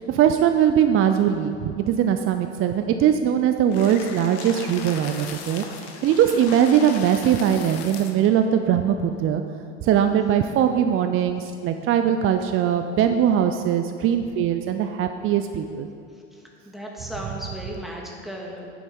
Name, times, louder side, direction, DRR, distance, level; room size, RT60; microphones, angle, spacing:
voice 1, 0.0-9.4 9.8-15.9, right 9 dB, 40° right, 7 dB, 0.6 m, -21 dB
sound 1, 3.7-8.3, left 6 dB, 65° left, 1.2 m, -38 dB
voice 2, 16.3-18.7, equal, ahead, -2 dB, 2.2 m, -36 dB
9.6 x 7.7 x 5.3 m, 2.5 s
hypercardioid pair, 80°, 34 cm